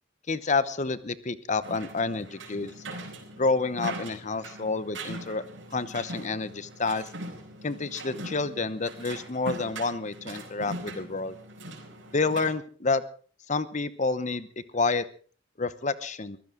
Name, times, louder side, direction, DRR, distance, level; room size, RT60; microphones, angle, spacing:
voice 1, 0.3-2.7 3.3-5.4 5.7-7.0 7.6-11.4 12.1-13.0 13.5-14.5 14.7-15.0 15.6-16.4, left 3 dB, 40° left, 14 dB, 0.9 m, -29 dB
sound 1, 1.6-12.5, right 1 dB, 90° right, 4.7 m, -41 dB
23.0 x 15.5 x 3.8 m, 0.43 s
head